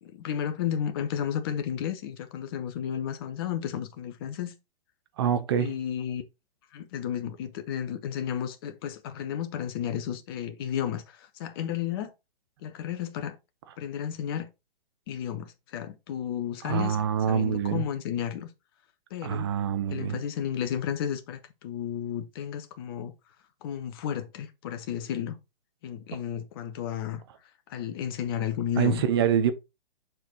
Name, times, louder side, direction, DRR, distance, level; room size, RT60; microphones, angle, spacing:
voice 1, 0.0-4.5 5.6-6.2 6.7-12.1 12.6-13.4 13.8-14.5 15.1-18.5 19.1-19.5 19.9-23.1 23.6-25.4 25.8-27.2 27.7-29.0, left 9 dB, 25° left, 0.7 m, -32 dB
voice 2, 5.2-5.7 16.6-17.8 19.2-20.2 28.8-29.5, right 8 dB, 25° right, 0.6 m, -25 dB
6.1 x 4.5 x 3.8 m
figure-of-eight pair, 130°, 29 cm